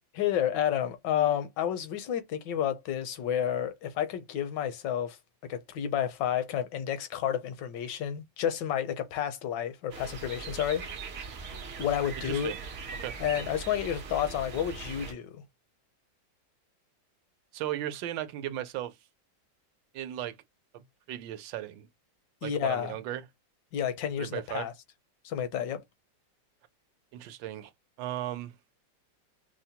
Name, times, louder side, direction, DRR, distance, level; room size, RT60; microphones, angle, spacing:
voice 1, 0.1-5.2 5.5-10.8 11.8-12.5 13.2-15.4 22.4-23.0 23.7-24.7 25.2-25.8, left 10 dB, 75° left, 1.3 m, -30 dB
sound 1, 9.9-15.1, right 5 dB, 65° right, 0.6 m, -40 dB
voice 2, 12.2-12.6 12.9-13.2 17.5-19.0 19.9-20.4 20.7-21.9 22.4-23.3 24.2-24.7 27.1-27.7 28.0-28.5, right 12 dB, 80° right, 1.3 m, -36 dB
5.4 x 2.0 x 2.8 m
omnidirectional pair, 2.0 m